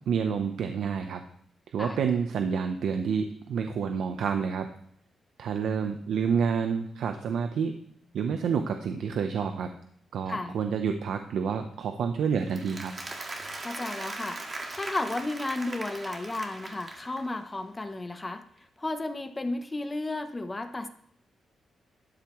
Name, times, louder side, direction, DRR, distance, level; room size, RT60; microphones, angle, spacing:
voice 1, 0.1-1.2 1.7-4.7 5.4-7.8 8.1-9.7 10.1-12.9, right 6 dB, 80° right, 6 dB, 0.8 m, -28 dB
voice 2, 10.3-10.6 13.6-14.4 14.7-18.4 18.8-20.9, left 2 dB, 20° left, 8 dB, 0.8 m, -33 dB
Applause, 12.4-17.4, right 2 dB, 30° right, 1.8 m, -39 dB
12.5 x 10.5 x 3.1 m, 0.67 s
cardioid pair, 120°, 0 cm